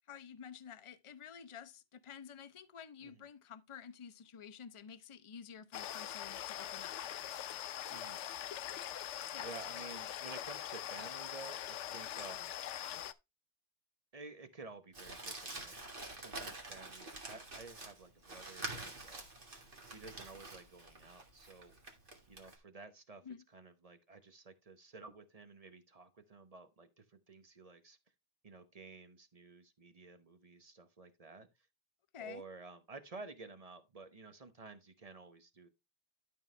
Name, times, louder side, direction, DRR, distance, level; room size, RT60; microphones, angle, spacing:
voice 1, 0.1-6.9 9.3-9.5 23.3-23.4 32.1-32.4, left 7 dB, 35° left, 0.6 m, -51 dB
sound 1, 5.7-13.1, left 11 dB, 90° left, 0.9 m, -43 dB
voice 2, 7.9-8.2 8.6-9.0 9.4-12.6 14.1-15.8 16.1-19.3 19.9-21.7 22.3-28.0 28.4-31.7 32.2-35.7, right 3 dB, 35° right, 1.0 m, -53 dB
Crumpling crinkling, 14.9-22.5, right 2 dB, 50° right, 2.1 m, -47 dB
11.5 x 5.6 x 3.2 m
omnidirectional pair, 1.2 m